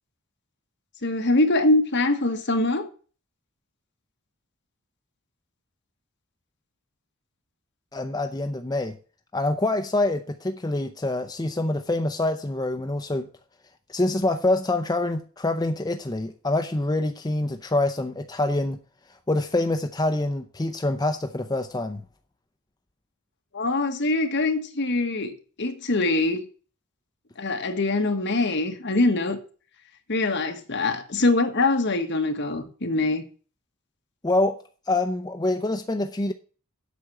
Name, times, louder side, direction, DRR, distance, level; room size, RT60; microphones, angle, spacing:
voice 1, 1.0-2.9 23.5-26.4 27.4-29.4 30.1-33.2, left 2 dB, 55° left, 1.4 m, -23 dB
voice 2, 7.9-9.0 9.3-13.3 13.9-18.8 19.1-22.0 34.2-34.6 34.9-36.3, left 2 dB, 20° left, 0.6 m, -26 dB
8.4 x 5.9 x 7.6 m
head